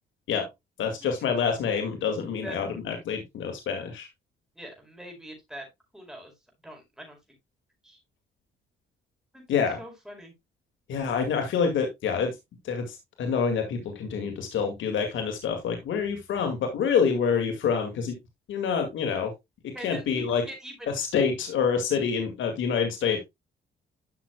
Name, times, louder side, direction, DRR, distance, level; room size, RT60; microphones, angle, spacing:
voice 1, 0.8-4.1 9.5-9.8 10.9-12.3 12.6-18.1 18.5-19.3 19.8-20.4 20.9-23.2, left 6 dB, 75° left, 5 dB, 2.1 m, -27 dB
voice 2, 4.5-5.7 5.9-6.3 6.6-7.2 7.8-8.0 9.3-9.4 9.8-10.3 19.7-20.9, right 1 dB, 5° right, 1 dB, 4.6 m, -42 dB
12.0 x 6.1 x 2.3 m, 0.19 s
cardioid pair, 90°, 20 cm